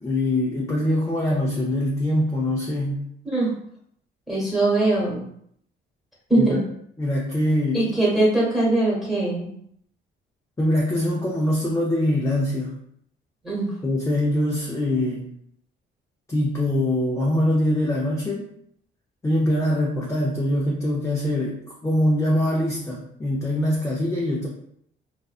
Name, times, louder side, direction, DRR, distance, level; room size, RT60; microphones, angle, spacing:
voice 1, 0.0-3.1 6.4-6.6 7.0-7.9 10.6-12.8 13.8-15.3 16.3-18.5 19.2-24.5, left 1 dB, 15° left, -3 dB, 0.5 m, -23 dB
voice 2, 4.3-5.2 6.3-6.6 7.7-9.5 13.4-13.7, right 2 dB, ahead, -5 dB, 1.2 m, -21 dB
2.5 x 2.2 x 2.4 m, 0.69 s
cardioid pair, 90°, 20 cm